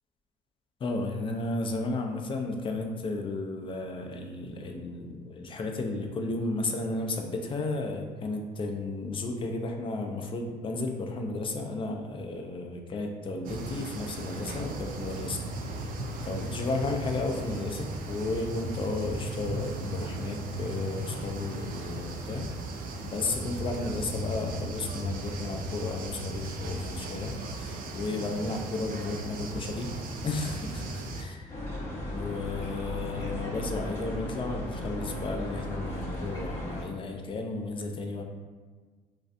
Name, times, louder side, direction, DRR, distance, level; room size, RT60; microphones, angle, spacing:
voice 1, 0.8-15.9 16.2-22.5 23.0-29.9 30.2-31.5 32.1-38.2, left 2 dB, 30° left, 3 dB, 0.4 m, -33 dB
sound 1, 13.4-31.2, right 1 dB, 55° right, 0.4 m, -36 dB
sound 2, 31.5-36.8, left 1 dB, 15° left, 1.1 m, -36 dB
3.1 x 2.5 x 2.5 m, 1.4 s
cardioid pair, 110°, 17 cm